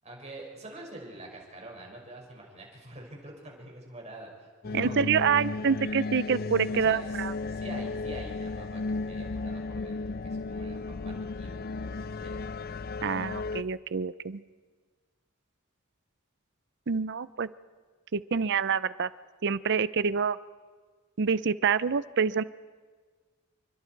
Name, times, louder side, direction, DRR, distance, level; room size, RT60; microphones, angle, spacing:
voice 1, 0.0-4.9 6.7-7.2 7.5-10.8 11.0-12.6, right 2 dB, 35° right, 0 dB, 5.9 m, -46 dB
sound 1, 4.6-13.6, left 3 dB, 50° left, 0.5 m, -34 dB
voice 2, 4.7-7.3 13.0-14.4 16.9-17.5 18.1-19.1 19.4-20.4 21.2-22.4, right 6 dB, 60° right, 17 dB, 0.6 m, -27 dB
28.5 x 24.0 x 4.6 m, 1.5 s
head